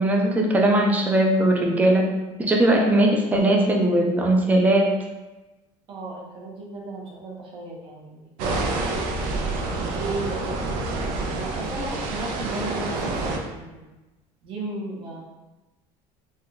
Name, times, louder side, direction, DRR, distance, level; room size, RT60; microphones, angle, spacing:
voice 1, 0.0-2.1 2.4-4.9, right 1 dB, 10° right, 0 dB, 0.4 m, -19 dB
voice 2, 5.9-8.3 9.5-10.8 11.2-13.9 14.4-15.2, right 2 dB, 45° right, -3 dB, 0.8 m, -35 dB
sound 1, 8.4-13.4, right 3 dB, 75° right, 0.5 m, -28 dB
3.4 x 2.3 x 2.7 m, 1.1 s
cardioid pair, 145°, 13 cm